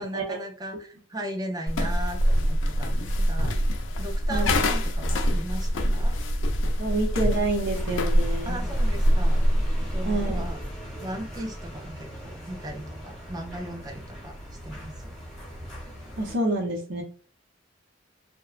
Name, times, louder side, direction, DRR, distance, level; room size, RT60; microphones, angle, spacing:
voice 1, 0.0-3.6 4.0-6.1 8.4-9.5 9.9-10.6 11.0-14.4 14.6-15.1, right 1 dB, 20° right, 3 dB, 0.4 m, -37 dB
sound 1, 1.7-10.6, equal, 85° left, 0.4 m, -24 dB
voice 2, 4.3-4.7 6.8-8.7 10.0-10.4 16.2-17.0, right 2 dB, 85° right, 0 dB, 0.8 m, -28 dB
sound 2, 7.7-16.3, equal, ahead, 0.8 m, -40 dB
2.8 x 2.1 x 2.3 m, 0.42 s
head